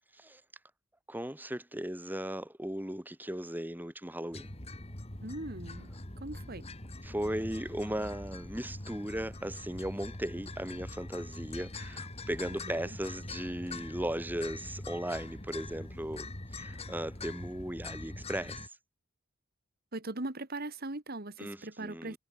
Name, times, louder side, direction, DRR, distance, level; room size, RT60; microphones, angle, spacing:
voice 1, 1.1-4.5 7.0-18.7 21.4-22.2, right 1 dB, 10° right, 2.5 m, -37 dB
sound 1, 4.3-18.7, left 2 dB, 30° left, 2.6 m, -43 dB
voice 2, 5.2-5.9 6.2-6.6 12.5-13.0 19.9-22.2, right 2 dB, 45° right, 2.2 m, -40 dB
head